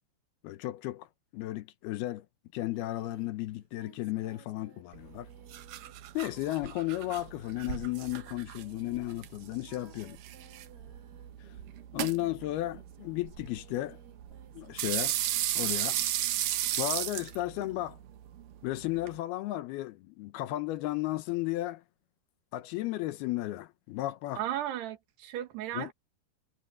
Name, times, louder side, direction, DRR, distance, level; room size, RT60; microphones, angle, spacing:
voice 1, 0.4-1.1 1.3-2.3 2.5-5.3 6.1-10.2 11.9-14.0 14.5-15.2 15.6-16.0 16.8-18.0 18.6-21.8 22.5-24.4 25.7-25.9, left 16 dB, 80° left, 2.7 m, -34 dB
Singing, 2.7-12.1 12.6-15.5, right 5 dB, 40° right, 3.0 m, -60 dB
sound 1, 4.9-19.2, right 12 dB, 70° right, 2.5 m, -36 dB
voice 2, 24.4-25.9, right 11 dB, 85° right, 3.6 m, -35 dB
omnidirectional pair, 4.7 m